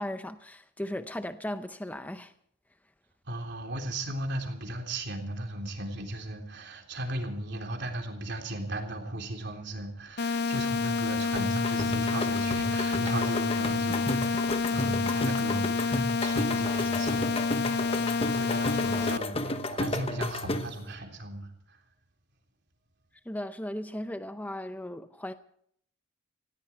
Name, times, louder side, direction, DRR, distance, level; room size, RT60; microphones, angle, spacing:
voice 1, 0.0-2.3 23.3-25.3, left 1 dB, 10° left, 0.6 m, -36 dB
voice 2, 3.3-18.0 18.3-21.8, right 1 dB, 60° right, 3.5 m, -36 dB
sound 1, 10.2-19.2, left 4 dB, 55° left, 0.7 m, -28 dB
sound 2, 11.4-20.9, left 1 dB, 30° left, 1.0 m, -33 dB
18.5 x 16.5 x 4.5 m
head